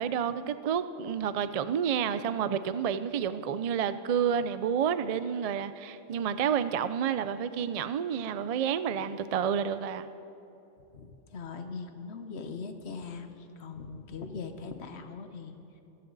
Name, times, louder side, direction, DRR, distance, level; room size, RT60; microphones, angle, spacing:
voice 1, 0.0-10.1, right 8 dB, 75° right, 13 dB, 0.3 m, -30 dB
voice 2, 10.9-13.3 13.6-15.6, left 5 dB, 60° left, 7 dB, 1.2 m, -40 dB
24.5 x 11.0 x 4.0 m, 2.9 s
omnidirectional pair, 1.3 m